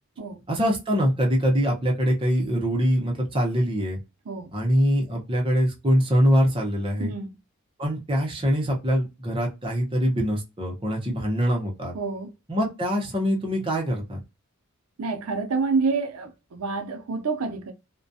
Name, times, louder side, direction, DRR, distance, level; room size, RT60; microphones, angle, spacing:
voice 1, 0.5-4.0 4.5-7.1 7.8-11.9 12.5-14.2, equal, 25° right, 0.7 m, -23 dB
voice 2, 7.0-7.3 11.9-12.3 15.0-17.7, right 4 dB, 80° right, 0.5 m, -28 dB
2.3 x 2.2 x 2.6 m
head